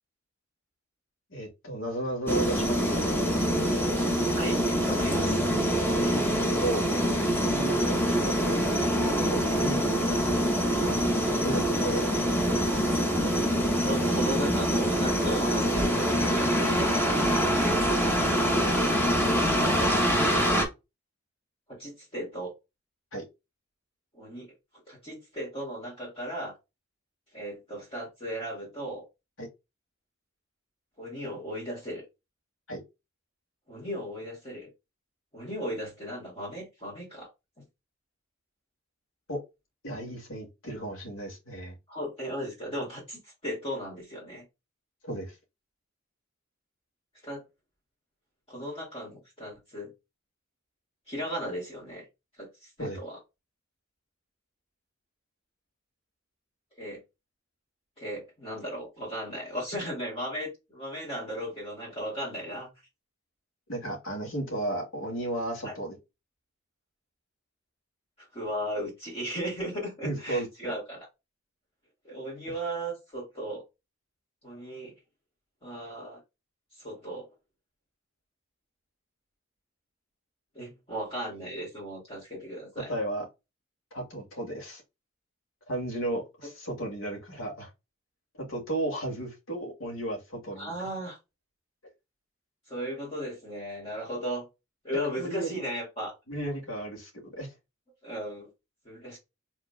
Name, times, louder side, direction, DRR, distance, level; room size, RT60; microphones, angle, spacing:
voice 1, 1.3-3.2 6.0-6.9 7.4-11.1 11.4-12.1 23.1-23.2 29.4-29.5 32.7-32.8 39.3-39.4 39.8-41.7 45.0-45.4 52.8-53.0 63.7-66.0 70.0-70.7 72.5-72.6 82.9-83.3 83.9-84.8 85.7-87.7 88.4-90.7 95.1-95.6 96.3-97.5, right 1 dB, 75° left, 2.3 m, -34 dB
sound 1, 2.3-20.7, equal, 10° left, 1.2 m, -25 dB
voice 2, 4.4-5.5 13.8-17.8 19.2-19.9 21.7-22.5 24.1-24.5 24.9-26.6 27.3-29.0 31.0-32.0 33.7-34.7 35.3-37.3 37.6-37.7 41.9-44.4 47.2-47.4 48.5-49.9 51.1-52.1 52.4-53.2 56.8-57.0 58.0-62.7 65.6-65.7 68.3-71.1 72.0-73.6 74.4-74.9 75.6-76.2 76.7-77.3 80.5-82.9 90.6-91.2 92.7-94.5 94.8-96.2 98.0-98.5 98.8-99.2, equal, 30° left, 2.4 m, -36 dB
4.9 x 3.7 x 2.2 m
head